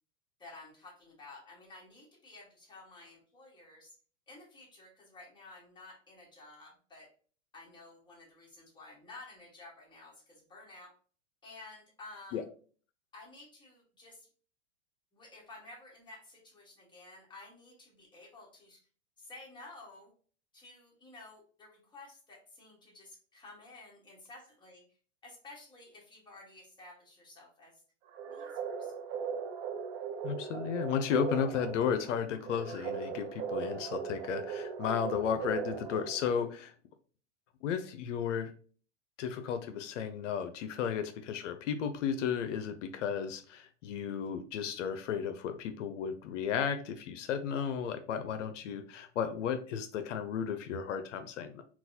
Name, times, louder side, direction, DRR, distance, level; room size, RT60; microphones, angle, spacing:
voice 1, 0.4-4.0 4.3-7.1 7.5-10.9 11.4-12.4 13.1-14.3 15.1-18.8 19.2-20.1 20.5-25.0 25.2-27.8 28.3-28.9, left 2 dB, 10° left, -3 dB, 1.4 m, -53 dB
sound 1, 28.1-36.5, right 6 dB, 40° right, 0.6 m, -38 dB
voice 2, 30.2-36.7 37.6-38.5 39.2-51.6, left 7 dB, 85° left, 9 dB, 0.5 m, -34 dB
3.9 x 2.3 x 2.7 m, 0.42 s
hypercardioid pair, 120°, 36 cm